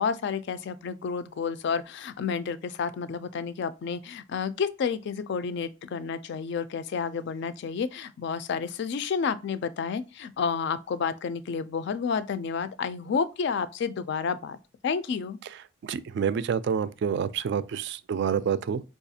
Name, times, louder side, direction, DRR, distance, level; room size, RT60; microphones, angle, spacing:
voice 1, 0.0-14.6 14.8-15.4, left 6 dB, 60° left, 0.3 m, -30 dB
voice 2, 15.8-18.8, right 7 dB, 60° right, 0.3 m, -28 dB
4.8 x 2.4 x 2.7 m
head